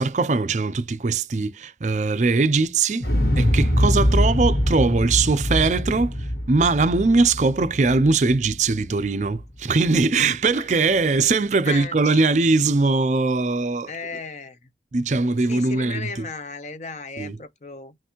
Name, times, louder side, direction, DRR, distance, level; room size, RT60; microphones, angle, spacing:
voice 1, 0.0-3.1 3.4-6.1 6.5-13.9 14.9-16.3 17.2-17.4, right 3 dB, 40° right, 0.4 m, -21 dB
Explosion, 3.0-9.0 9.4-9.5, equal, 60° left, 1.3 m, -23 dB
voice 2, 11.6-12.2 13.9-14.6 15.4-18.0, left 4 dB, 40° left, 0.6 m, -35 dB
5.8 x 2.4 x 2.9 m
head